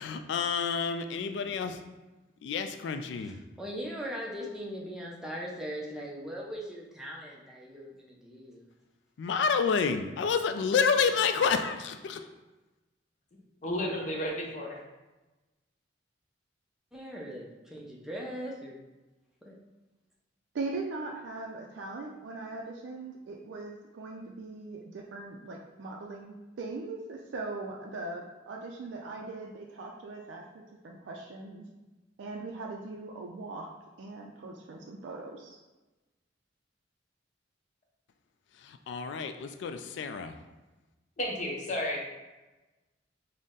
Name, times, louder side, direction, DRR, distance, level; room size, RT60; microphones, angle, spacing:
voice 1, 0.0-1.8 2.4-3.4 9.2-12.3 38.6-40.4, left 5 dB, 70° left, 8 dB, 0.3 m, -29 dB
voice 2, 3.2-8.6 16.9-18.8 19.4-19.5, equal, 5° right, -4 dB, 0.5 m, -40 dB
voice 3, 13.6-14.8 41.2-42.0, left 1 dB, 40° left, -1 dB, 0.7 m, -32 dB
voice 4, 20.5-31.6 32.2-33.7 34.0-35.6, right 3 dB, 75° right, 0 dB, 0.4 m, -40 dB
3.9 x 2.1 x 3.6 m, 1.1 s
head